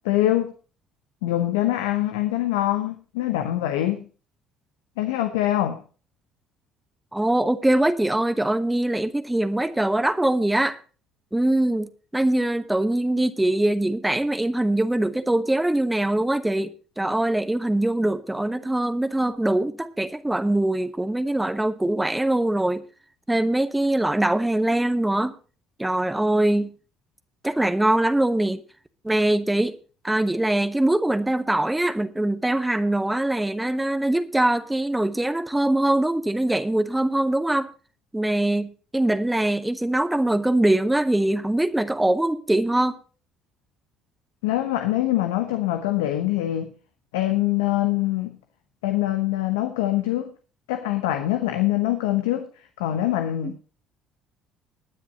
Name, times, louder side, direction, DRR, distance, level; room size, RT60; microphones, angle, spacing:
voice 1, 0.0-0.5 1.2-4.1 5.0-5.8 44.4-46.7 47.1-48.4 48.8-50.3 50.7-52.5 52.8-53.6, left 14 dB, 80° left, 1.1 m, -24 dB
voice 2, 7.1-10.8 11.3-22.8 23.3-25.3 25.8-26.7 27.4-28.6 29.0-29.7 30.0-37.7 38.1-42.9, right 1 dB, 10° right, 1.1 m, -22 dB
19.0 x 9.8 x 2.9 m
hypercardioid pair, 60°, 0 cm